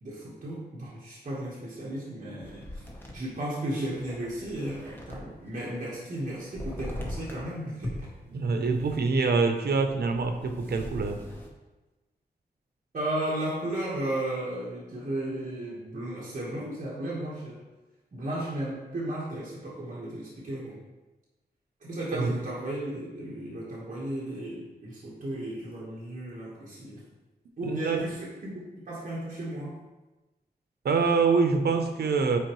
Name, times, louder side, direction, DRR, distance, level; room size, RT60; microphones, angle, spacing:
voice 1, 0.0-2.8 3.1-8.1 12.9-17.6 18.1-20.8 21.8-27.1 27.6-29.8, right 1 dB, 50° right, -6 dB, 1.3 m, -34 dB
sound 1, 2.4-5.5 5.8-7.5 7.8-11.5, left 1 dB, 15° left, 0.9 m, -41 dB
voice 2, 8.3-11.2 22.1-22.3 27.6-28.0 30.8-32.4, right 4 dB, 80° right, 6 dB, 0.7 m, -25 dB
8.2 x 4.5 x 3.1 m, 1.1 s
wide cardioid pair, 150°, 17 cm